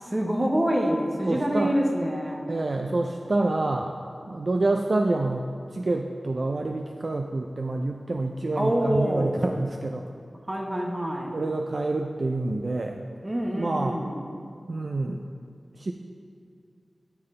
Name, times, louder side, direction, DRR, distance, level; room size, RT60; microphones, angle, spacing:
voice 1, 0.0-2.4 8.6-9.4 10.5-11.4 13.2-14.2, equal, 30° right, 0 dB, 1.0 m, -26 dB
voice 2, 1.3-1.7 2.5-4.0 4.3-5.4 5.7-10.1 11.3-13.0 13.5-14.0 14.7-15.2 15.8-15.9, right 2 dB, 60° right, 3 dB, 0.3 m, -27 dB
10.5 x 4.0 x 3.2 m, 2.3 s
wide cardioid pair, 60°, 0 cm